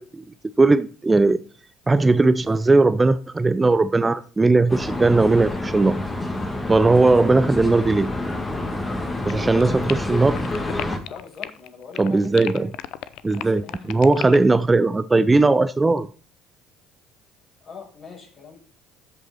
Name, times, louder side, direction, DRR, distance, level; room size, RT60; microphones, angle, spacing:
voice 1, 0.6-1.4 1.9-6.0 6.7-8.1 9.3-10.4 12.0-12.7 13.2-16.1, right 3 dB, 20° right, 0.5 m, -18 dB
sound 1, 4.7-11.0, left 2 dB, 20° left, 2.1 m, -28 dB
sound 2, 9.3-11.7 11.9-14.6, left 13 dB, 65° left, 0.5 m, -34 dB
voice 2, 11.1-12.7 13.2-14.3 17.6-18.6, left 6 dB, 45° left, 5.4 m, -43 dB
13.5 x 5.4 x 4.3 m
hypercardioid pair, 55°, 0 cm